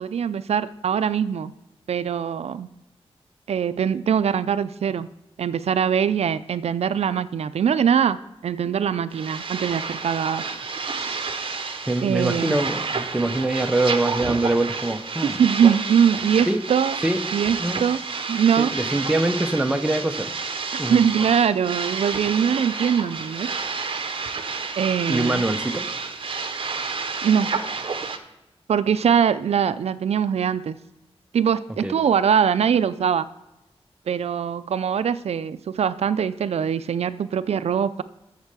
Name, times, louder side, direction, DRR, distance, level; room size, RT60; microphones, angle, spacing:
voice 1, 0.0-1.5 1.9-2.7 3.5-5.1 5.4-8.2 8.4-10.4 11.0-11.2 12.0-12.6 15.2-17.0 17.3-18.0 18.3-18.7 20.7-23.5 24.8-25.4 27.2-27.5 28.7-30.8 31.3-33.3 34.1-38.0, right 7 dB, 80° right, 13 dB, 0.4 m, -22 dB
sound 1, 9.1-28.2, right 4 dB, 55° right, 0.8 m, -30 dB
voice 2, 11.9-15.4 16.5-16.6 17.0-17.2 17.6-17.8 18.6-20.3 20.8-21.0 25.1-25.9 31.8-31.9, right 2 dB, 10° right, 6 dB, 0.7 m, -24 dB
8.0 x 6.6 x 6.8 m, 1.0 s
wide cardioid pair, 115°, 11 cm